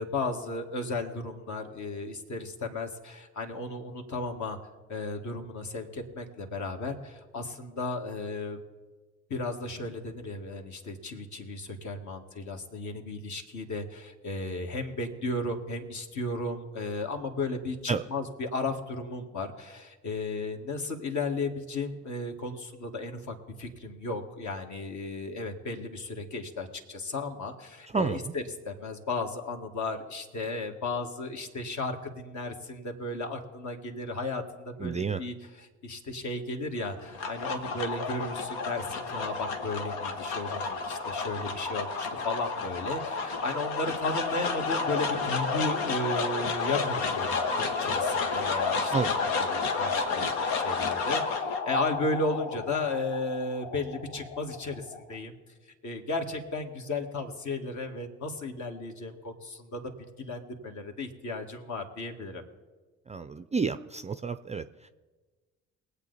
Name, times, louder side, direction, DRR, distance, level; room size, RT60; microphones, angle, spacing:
voice 1, 0.0-4.6 4.9-8.6 9.3-49.2 49.5-55.3 55.8-59.9 60.2-62.4, left 2 dB, 50° left, 4 dB, 2.0 m, -34 dB
voice 2, 27.9-28.3 34.8-35.2 48.9-49.1 63.1-64.9, right 4 dB, 20° right, 12 dB, 0.4 m, -30 dB
sound 1, 36.9-55.2, left 4 dB, 70° left, 1.2 m, -31 dB
21.5 x 8.3 x 4.1 m, 1.3 s
hypercardioid pair, 55°, 37 cm